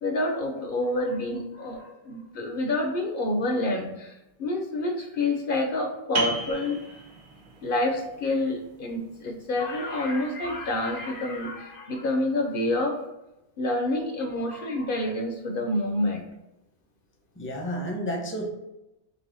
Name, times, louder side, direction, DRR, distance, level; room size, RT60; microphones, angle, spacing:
voice 1, 0.0-1.8 2.0-4.1 4.4-6.8 7.6-13.0 13.6-16.2, left 1 dB, 60° left, 3 dB, 0.7 m, -28 dB
voice 2, 1.5-2.2 6.2-6.3 14.5-15.1 17.4-18.5, equal, 15° left, 0 dB, 0.5 m, -34 dB
sound 1, 6.1-11.5, right 3 dB, 80° right, 1.1 m, -37 dB
3.4 x 3.0 x 3.9 m, 0.91 s
omnidirectional pair, 1.1 m